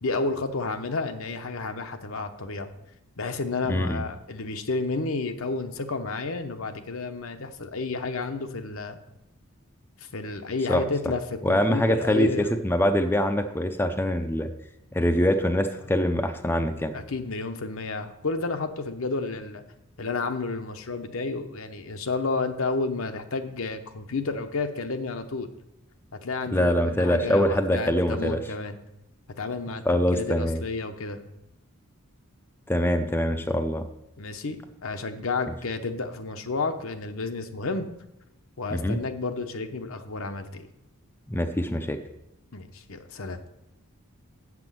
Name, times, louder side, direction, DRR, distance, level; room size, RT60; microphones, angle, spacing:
voice 1, 0.0-2.7 3.2-9.0 10.0-12.5 16.9-19.6 20.0-25.5 26.2-28.8 29.4-31.2 34.2-37.9 38.6-40.7 42.5-43.4, left 3 dB, 70° left, 7 dB, 0.9 m, -31 dB
voice 2, 3.7-4.0 10.7-10.8 11.4-12.3 12.6-14.5 14.9-17.0 26.5-28.4 29.9-30.6 32.7-33.8 38.7-39.0 41.3-42.0, equal, 10° left, 6 dB, 0.5 m, -24 dB
7.7 x 6.1 x 7.6 m, 0.85 s
head